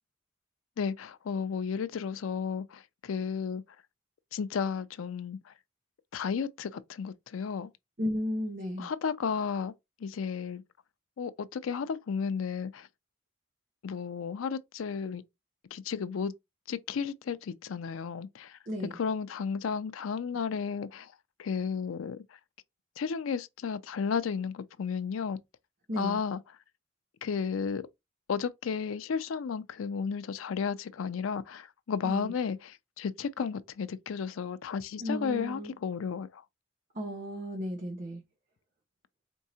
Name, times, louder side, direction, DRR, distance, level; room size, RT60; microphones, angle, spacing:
voice 1, 0.8-3.6 4.3-5.4 6.1-7.7 8.8-9.7 10.0-10.6 11.2-12.9 13.8-15.2 15.7-16.3 16.7-18.6 18.9-21.1 21.4-22.2 23.0-25.4 26.0-26.4 27.2-27.9 28.3-36.4, left 6 dB, 90° left, 0.4 m, -33 dB
voice 2, 8.0-8.9 18.7-19.0 25.9-26.2 32.0-32.3 35.0-35.7 36.9-38.2, left 1 dB, 40° right, 0.9 m, -34 dB
4.5 x 2.7 x 2.7 m
head